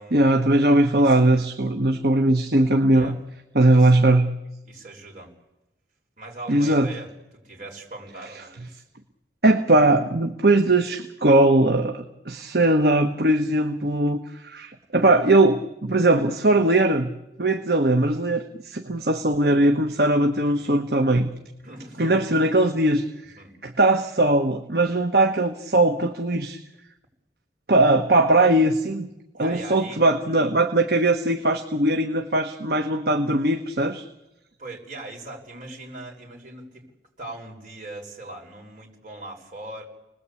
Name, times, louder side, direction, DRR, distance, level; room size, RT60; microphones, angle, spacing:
voice 1, 0.1-3.1 3.5-4.3 6.5-6.9 9.4-17.1 17.4-21.3 22.0-23.0 23.6-26.6 27.7-29.1 29.4-34.0, right 2 dB, 60° right, 5 dB, 1.3 m, -20 dB
voice 2, 4.6-5.3 6.2-8.9 20.4-20.8 21.6-22.2 23.4-23.5 29.4-30.0 34.6-36.8 37.2-39.8, right 2 dB, 45° right, -1 dB, 5.7 m, -40 dB
29.5 x 20.5 x 8.5 m, 0.96 s
head